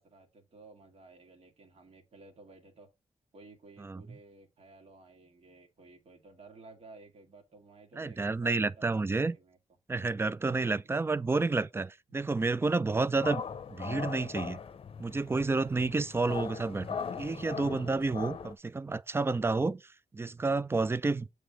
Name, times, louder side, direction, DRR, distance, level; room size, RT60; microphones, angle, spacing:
voice 1, 0.0-2.9 3.3-9.6, right 3 dB, 60° right, 1.8 m, -55 dB
voice 2, 8.0-9.4 9.9-13.4 13.7-14.6 15.0-19.8 20.1-21.3, right 3 dB, 20° right, 0.4 m, -30 dB
sound 1, 13.1-18.5, left 6 dB, 55° left, 0.6 m, -40 dB
7.9 x 3.3 x 5.1 m
cardioid pair, 85°, 12 cm